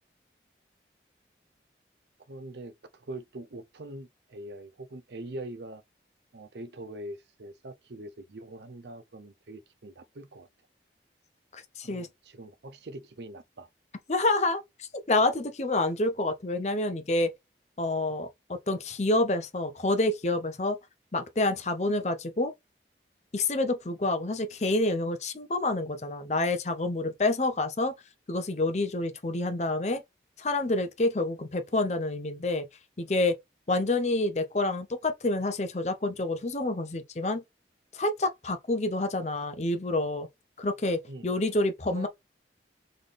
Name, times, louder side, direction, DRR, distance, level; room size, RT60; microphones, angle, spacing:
voice 1, 2.3-5.8 6.3-10.5 11.8-13.7 41.1-41.3 41.9-42.1, right 1 dB, 75° right, 0.7 m, -43 dB
voice 2, 11.5-12.1 14.1-17.3 17.8-20.8 21.1-22.5 23.3-27.9 28.3-30.0 30.4-32.7 33.0-33.4 33.7-37.4 37.9-40.3 40.6-42.1, left 2 dB, 40° left, 0.7 m, -28 dB
3.9 x 3.8 x 3.3 m
head